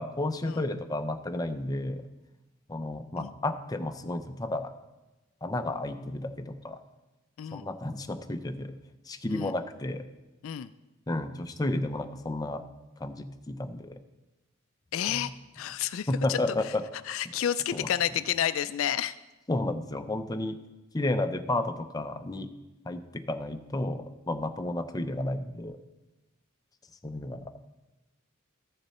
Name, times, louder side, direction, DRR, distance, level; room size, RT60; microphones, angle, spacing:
voice 1, 0.0-2.0 2.7-4.7 5.4-6.8 7.5-8.7 9.1-10.0 11.1-12.6 13.0-14.0 15.1-15.2 16.1-16.8 17.7-17.9 19.5-20.6 20.9-22.5 22.9-25.8 27.0-27.5, left 2 dB, 20° left, 8 dB, 0.6 m, -32 dB
voice 2, 14.9-16.4 17.1-19.2, left 10 dB, 70° left, 14 dB, 0.3 m, -30 dB
14.0 x 6.7 x 4.2 m, 1.1 s
head